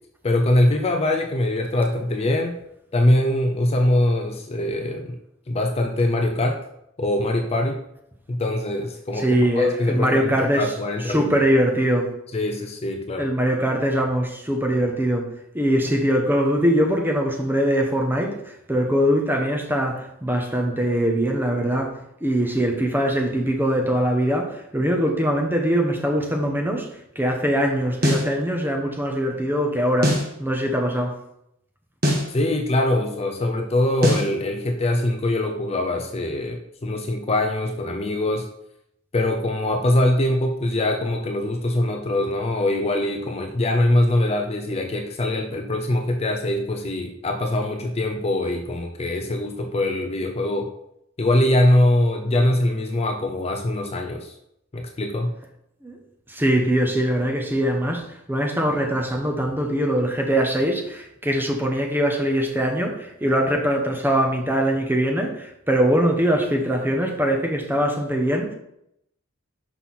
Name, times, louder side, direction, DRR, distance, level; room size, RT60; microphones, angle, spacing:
voice 1, 0.2-2.6 2.9-5.2 5.5-6.6 7.0-7.8 8.3-9.3 9.5-11.3 12.3-13.3 32.3-38.5 39.1-50.7 51.2-54.3 54.7-55.3, left 1 dB, 30° left, 0.5 m, -22 dB
voice 2, 9.2-10.7 11.1-12.1 13.2-15.3 15.5-18.4 18.7-26.9 27.2-31.1 55.8-56.0 56.3-68.5, equal, 10° right, 1.0 m, -22 dB
sound 1, 28.0-28.3 30.0-30.3 32.0-32.3 34.0-34.3, equal, 45° right, 1.6 m, -21 dB
5.9 x 5.5 x 4.2 m
head